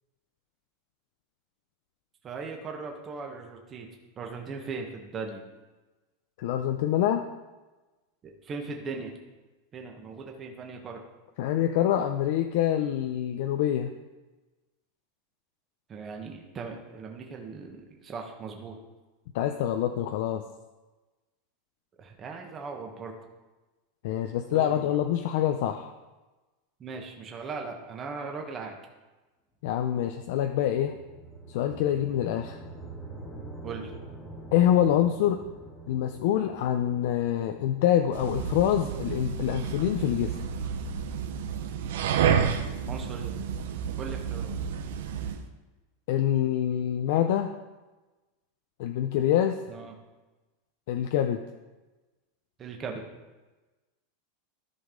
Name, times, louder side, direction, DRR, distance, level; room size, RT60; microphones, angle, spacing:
voice 1, 2.2-3.9 4.2-5.4 8.4-9.1 9.7-11.0 15.9-18.8 22.0-23.1 24.5-24.9 26.8-28.8 33.6-33.9 42.9-43.4 44.0-44.5 49.7-49.9 52.6-53.0, right 4 dB, 25° right, 2 dB, 1.1 m, -38 dB
voice 2, 6.4-7.3 11.4-13.9 19.3-20.4 24.0-25.9 29.6-30.9 31.5-32.6 34.5-35.4 35.9-40.3 46.1-47.5 48.8-49.6 50.9-51.4, left 11 dB, 60° left, 6 dB, 0.5 m, -25 dB
sound 1, 30.2-40.0, right 2 dB, 15° left, 1.6 m, -46 dB
sound 2, 38.1-45.4, right 7 dB, 80° right, 0.8 m, -30 dB
13.5 x 5.3 x 3.8 m, 1.2 s
supercardioid pair, 155°, 0 cm